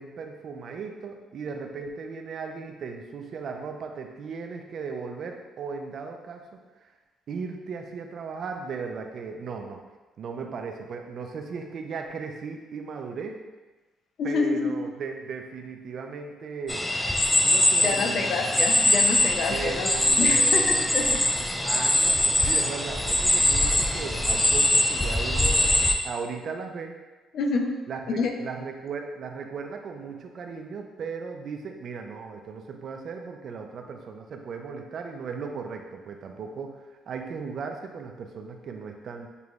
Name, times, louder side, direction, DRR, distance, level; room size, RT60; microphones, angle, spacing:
voice 1, 0.0-6.5 6.8-6.9 7.3-9.8 10.2-13.4 14.2-16.9 17.4-18.3 19.5-21.0 21.6-27.0 27.9-36.8 37.1-39.3, right 5 dB, 55° right, 4 dB, 0.5 m, -36 dB
voice 2, 14.2-14.8 17.8-19.9 20.2-21.2 27.3-27.8 28.2-28.4, left 4 dB, 60° left, 4 dB, 0.5 m, -27 dB
sound 1, 16.7-25.9, left 1 dB, 10° left, 0.4 m, -22 dB
6.7 x 2.3 x 3.0 m, 1.2 s
cardioid pair, 105°, 0 cm